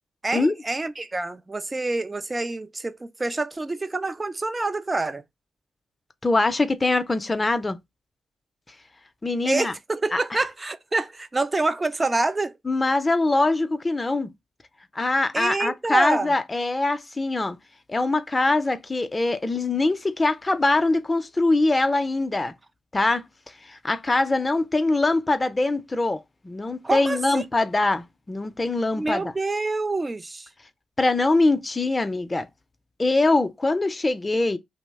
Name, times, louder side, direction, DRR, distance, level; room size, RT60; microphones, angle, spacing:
voice 1, 0.2-5.2 9.4-12.5 15.3-16.3 26.8-27.4 29.0-30.5, right 2 dB, 30° right, 0.5 m, -26 dB
voice 2, 6.2-7.8 9.2-9.7 10.1-10.4 12.6-14.3 14.9-17.6 17.9-22.5 22.9-23.2 23.6-26.2 26.4-29.3 31.0-32.5 33.0-34.6, left 2 dB, 25° left, 0.5 m, -23 dB
2.8 x 2.1 x 3.3 m
hypercardioid pair, 45°, 0 cm